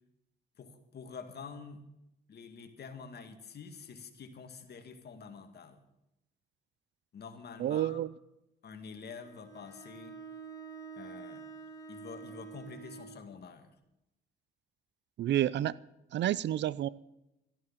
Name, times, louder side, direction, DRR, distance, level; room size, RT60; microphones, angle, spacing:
voice 1, 0.6-1.9 2.3-5.8 7.1-8.0 8.6-10.2 11.0-11.5 11.9-13.7, left 5 dB, 55° left, 7 dB, 2.0 m, -47 dB
voice 2, 7.6-8.1 15.2-15.7 16.1-16.9, right 12 dB, 65° right, 21 dB, 0.5 m, -29 dB
Bowed string instrument, 9.2-13.2, right 5 dB, 15° left, 3.5 m, -47 dB
13.5 x 11.0 x 7.3 m, 0.88 s
cardioid pair, 90°, 20 cm